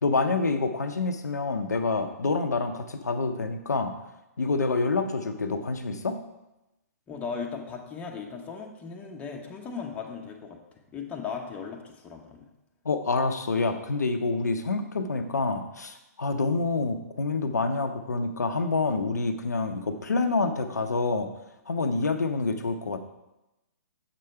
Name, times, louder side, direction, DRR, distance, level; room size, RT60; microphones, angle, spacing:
voice 1, 0.0-4.0 4.4-6.2 12.8-21.3 21.7-23.0, left 3 dB, 80° left, 7 dB, 0.7 m, -27 dB
voice 2, 7.1-12.5, left 5 dB, 15° left, 1 dB, 0.9 m, -37 dB
7.6 x 4.9 x 4.5 m, 0.96 s
figure-of-eight pair, 125°, 9 cm